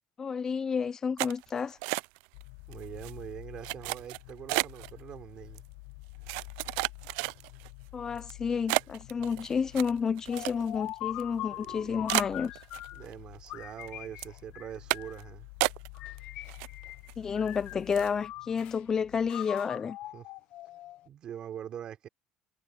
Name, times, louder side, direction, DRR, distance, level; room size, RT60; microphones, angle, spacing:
voice 1, 0.2-1.8 7.9-12.5 17.2-20.0, left 6 dB, 25° left, 0.6 m, -30 dB
sound 1, 1.2-2.4 2.7-3.1 3.6-4.9 5.6-5.7 6.3-7.7 8.2-8.3 8.7-10.9 11.2-11.3 11.6-11.7 12.1-13.1 13.5-13.9 14.2-14.4 14.9-15.2 15.6-16.2 16.5-17.1 17.5-17.6 17.9-18.2, right 27 dB, 80° right, 0.4 m, -32 dB
sound 2, 2.3-19.3, left 40 dB or more, 90° left, 6.2 m, -50 dB
voice 2, 2.7-5.6 11.5-12.1 12.9-15.5 20.1-20.3 21.1-22.1, right 10 dB, 45° right, 4.1 m, -43 dB
sound 3, 10.3-13.1 13.5-15.3 15.9-17.1 17.3-18.8 19.3-21.1, left 16 dB, 60° left, 1.0 m, -42 dB
cardioid pair, 130°, 2 cm